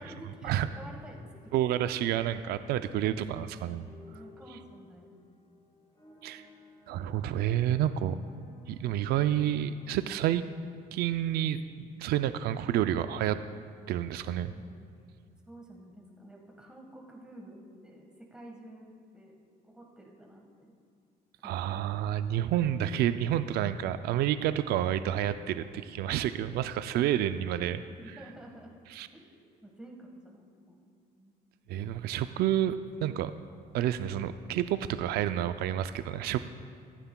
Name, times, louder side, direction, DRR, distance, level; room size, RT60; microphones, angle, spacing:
voice 1, 0.0-1.6 4.1-5.2 8.1-8.5 14.5-15.0 15.5-19.4 19.6-20.7 21.4-21.9 27.9-28.7 29.1-31.3, right 1 dB, 5° right, -1 dB, 1.4 m, -51 dB
voice 2, 1.5-3.9 6.2-6.4 6.9-8.2 8.7-10.4 10.9-13.4 13.9-14.5 21.4-27.8 28.9-29.1 31.7-33.3 33.7-36.4, right 11 dB, 70° right, 11 dB, 0.4 m, -29 dB
sound 1, 1.6-11.7, left 2 dB, 25° left, 1.5 m, -59 dB
15.0 x 11.5 x 2.2 m, 2.4 s
cardioid pair, 110°, 17 cm